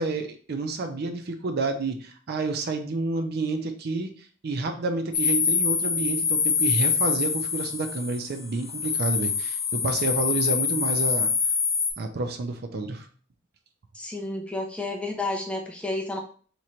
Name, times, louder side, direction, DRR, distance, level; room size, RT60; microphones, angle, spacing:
voice 1, 0.0-11.3 12.0-13.1, right 3 dB, 50° right, 6 dB, 0.5 m, -29 dB
sound 1, 5.1-11.9, left 6 dB, 45° left, 0.7 m, -25 dB
voice 2, 13.9-16.2, left 2 dB, 5° left, 0 dB, 0.5 m, -31 dB
3.0 x 2.5 x 4.3 m, 0.43 s
head